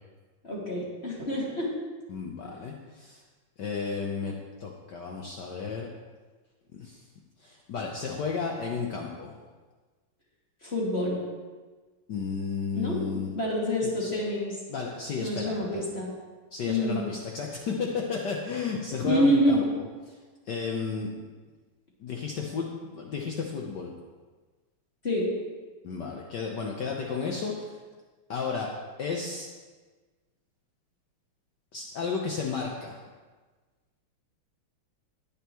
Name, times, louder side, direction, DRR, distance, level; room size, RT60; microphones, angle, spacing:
voice 1, 0.4-1.7 10.6-11.2 12.7-14.6 15.2-16.1 16.6-17.0 19.0-19.6 25.0-25.3, equal, 30° left, -5 dB, 2.4 m, -27 dB
voice 2, 2.1-3.2 3.6-4.3 4.6-5.9 6.7-7.0 7.4-9.3 12.1-13.3 13.8-14.2 14.7-15.8 16.5-19.6 20.5-21.1 22.0-23.9 25.8-27.8 28.3-28.7 29.0-29.5 31.7-33.0, left 5 dB, 60° left, 0 dB, 1.4 m, -33 dB
20.0 x 7.0 x 3.1 m, 1.3 s
omnidirectional pair, 2.4 m